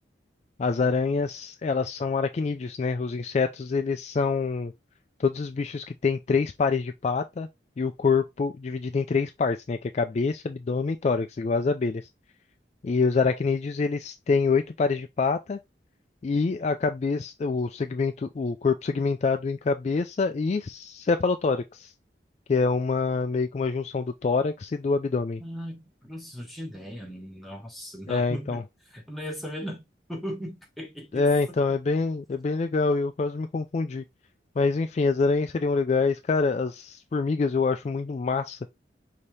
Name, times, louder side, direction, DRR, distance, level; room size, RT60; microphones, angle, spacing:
voice 1, 0.6-4.7 5.2-7.5 7.8-12.0 12.8-15.6 16.2-21.9 22.5-25.4 28.1-28.6 31.1-34.0 34.6-38.6, left 4 dB, 35° left, 0.3 m, -26 dB
voice 2, 25.4-28.6 28.9-29.8 30.1-31.2, equal, ahead, 1.0 m, -37 dB
5.3 x 2.8 x 3.2 m
head